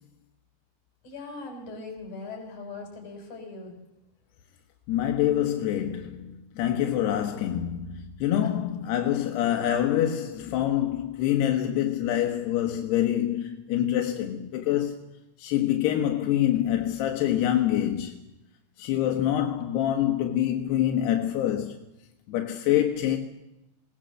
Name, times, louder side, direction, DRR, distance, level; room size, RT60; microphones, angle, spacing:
voice 1, 1.0-3.7 8.4-9.0, left 3 dB, 45° left, 6.9 m, -40 dB
voice 2, 4.9-15.0 15.4-18.1 18.8-21.7 22.3-23.2, left 11 dB, 85° left, 3.4 m, -26 dB
21.0 x 19.0 x 7.7 m
omnidirectional pair, 4.6 m